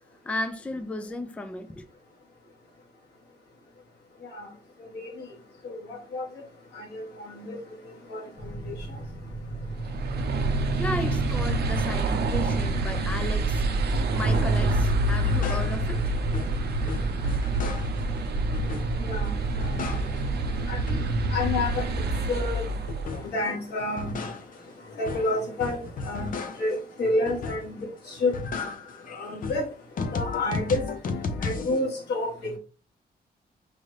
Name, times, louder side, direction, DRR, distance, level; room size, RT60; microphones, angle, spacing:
voice 1, 0.3-1.8 10.8-13.6 14.1-16.2, left 2 dB, 10° left, 0.3 m, -34 dB
voice 2, 5.6-6.2 6.8-7.6 8.1-8.2 8.7-8.8 19.0-19.3 19.6-19.7 20.7-21.0 21.3-21.8 22.3-22.6 23.2-24.2 25.0-25.8 26.0-26.3 26.6-27.8 28.1-28.3 29.1-29.7 30.1-30.8 31.4-32.6, left 2 dB, 90° left, 1.7 m, -29 dB
sound 1, 8.4-18.0, right 2 dB, 30° left, 0.8 m, -37 dB
sound 2, 9.7-23.2, right 2 dB, 80° right, 0.6 m, -27 dB
sound 3, 14.3-14.6 15.1-16.1 16.3-18.1 18.5-19.2 19.4-20.4 20.7-23.4 23.8-26.8 27.3-27.9 28.2-31.8, left 3 dB, 55° left, 0.6 m, -34 dB
5.2 x 2.5 x 3.2 m
wide cardioid pair, 170°, 17 cm